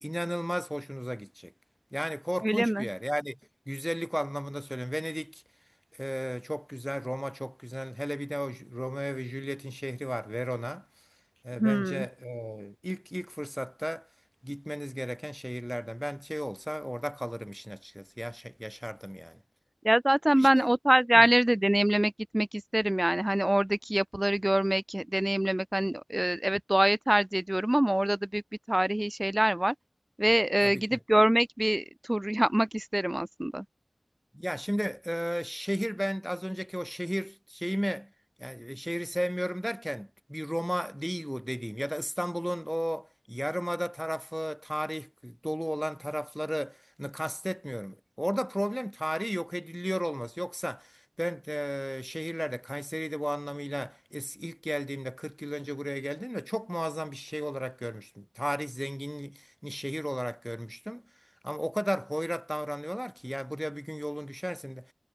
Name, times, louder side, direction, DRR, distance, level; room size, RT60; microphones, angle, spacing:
voice 1, 0.0-1.5 1.9-3.4 3.7-5.4 6.0-10.8 11.4-14.1 14.4-19.4 20.4-20.7 21.1-21.3 30.6-31.0 34.3-38.1 38.4-61.0 61.4-64.9, equal, 5° right, 1.6 m, -34 dB
voice 2, 2.4-2.9 11.6-12.1 19.8-28.4 28.7-29.7 30.2-33.6, right 1 dB, 20° right, 1.4 m, -25 dB
wide cardioid pair, 50°, 0 cm